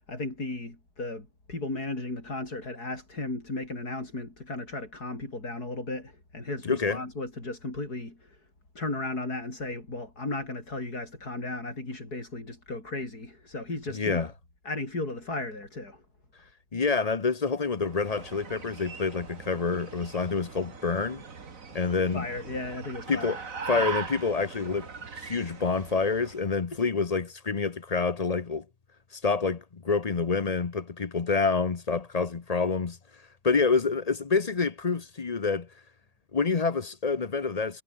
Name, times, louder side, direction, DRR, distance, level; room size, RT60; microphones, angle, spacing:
voice 1, 0.1-8.4 8.8-14.3 14.7-16.0 22.1-23.4 23.8-23.9, left 2 dB, 70° left, 7.0 m, -35 dB
voice 2, 6.6-7.0 13.9-14.3 16.7-21.2 21.7-22.3 23.1-23.4 23.7-24.9 25.2-28.6 29.1-33.0 33.4-35.7 36.3-37.8, left 4 dB, 35° left, 0.7 m, -27 dB
sound 1, 17.8-26.5, right 5 dB, 55° right, 2.5 m, -40 dB
omnidirectional pair, 1.7 m